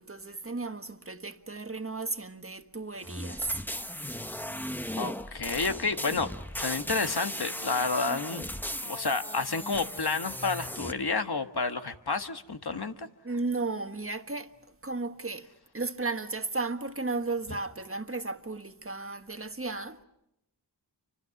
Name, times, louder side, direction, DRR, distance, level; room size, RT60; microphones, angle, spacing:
voice 1, 0.0-3.6 13.2-14.5 14.8-15.5 15.7-20.0, right 3 dB, 30° right, 1.5 m, -34 dB
sound 1, 3.0-10.9, equal, 5° left, 1.0 m, -37 dB
voice 2, 5.0-8.5 8.8-13.1, left 4 dB, 65° left, 1.6 m, -30 dB
30.0 x 25.0 x 5.9 m
wide cardioid pair, 45°, 41 cm